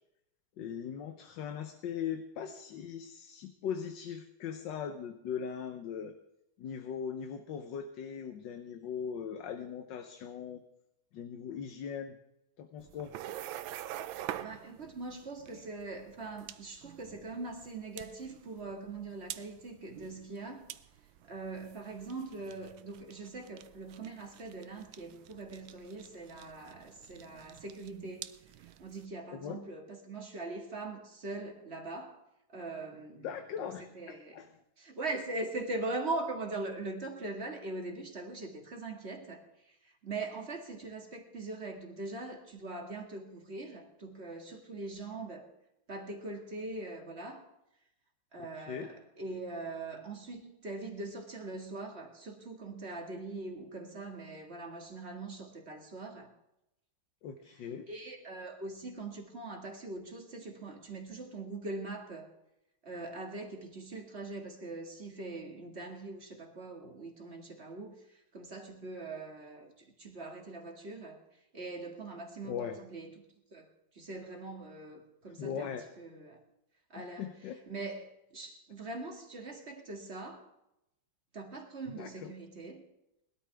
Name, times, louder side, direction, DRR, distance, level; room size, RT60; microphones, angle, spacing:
voice 1, 0.6-6.1 6.6-10.6 11.1-12.2 12.6-13.1 29.3-29.6 33.2-34.5 48.4-48.9 57.2-57.8 72.4-72.8 75.4-75.8 76.9-77.6 81.9-82.3, left 7 dB, 70° left, 7 dB, 1.5 m, -40 dB
sound 1, 12.8-29.0, right 12 dB, 85° right, 1.4 m, -47 dB
voice 2, 14.4-20.7 21.3-28.3 28.6-32.2 32.5-33.3 33.6-34.4 34.8-45.5 45.9-47.5 48.3-56.3 57.9-62.3 62.8-71.2 71.5-73.2 73.5-73.7 73.9-76.4 76.9-77.3 77.7-80.4 81.3-82.9, right 2 dB, 35° right, 3 dB, 2.2 m, -42 dB
21.0 x 12.5 x 3.5 m, 0.86 s
omnidirectional pair, 2.1 m